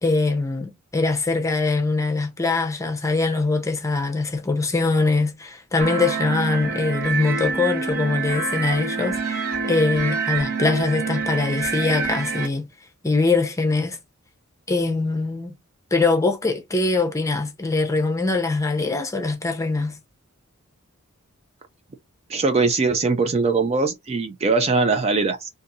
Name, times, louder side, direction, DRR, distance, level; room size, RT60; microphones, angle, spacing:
voice 1, 0.0-12.7 13.0-14.0 14.7-15.5 15.9-20.0, left 3 dB, 15° left, 0.7 m, -22 dB
sound 1, 5.8-12.5, right 4 dB, 45° right, 1.0 m, -26 dB
voice 2, 22.3-25.5, right 4 dB, 30° right, 0.4 m, -21 dB
2.6 x 2.6 x 3.9 m
head